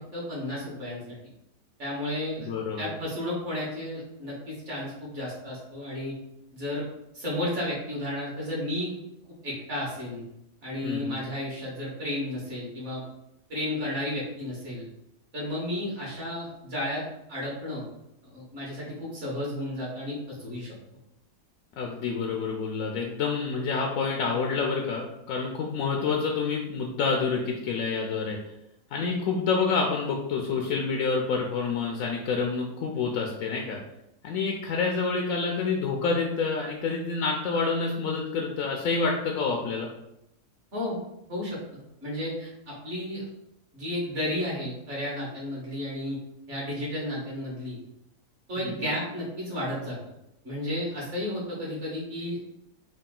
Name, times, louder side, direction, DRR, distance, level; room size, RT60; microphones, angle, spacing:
voice 1, 0.1-1.0 1.8-2.5 2.8-6.1 6.5-6.8 7.1-8.9 9.4-10.2 10.6-13.0 13.5-14.8 15.3-17.0 17.3-17.8 18.2-20.7 40.7-41.0 41.3-42.5 42.8-43.2 43.7-46.2 46.5-47.8 48.5-50.0 50.4-52.4, left 1 dB, 45° right, -6 dB, 1.7 m, -32 dB
voice 2, 2.4-2.9 10.8-11.2 21.8-28.4 28.9-33.8 34.2-39.9 48.6-48.7, left 4 dB, 70° left, 0 dB, 0.8 m, -28 dB
3.8 x 2.3 x 3.7 m, 0.84 s
omnidirectional pair, 1.7 m